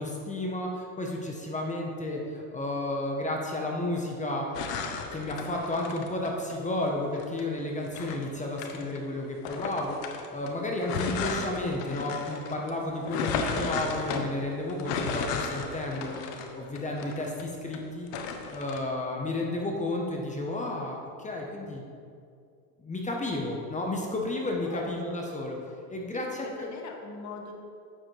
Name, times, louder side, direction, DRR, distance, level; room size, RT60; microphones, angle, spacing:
voice 1, 0.0-4.7 5.1-16.2 16.5-18.1 18.5-21.8 22.8-25.6 25.9-26.7, left 2 dB, 15° left, 0 dB, 1.0 m, -32 dB
sound 1, 4.5-6.6 7.1-9.0 9.4-17.8 18.1-18.8, left 5 dB, 70° left, 1.1 m, -34 dB
voice 2, 24.6-25.2 26.1-27.5, left 4 dB, 35° left, 2 dB, 1.3 m, -42 dB
8.7 x 7.2 x 3.3 m, 2.4 s
supercardioid pair, 105°, 49 cm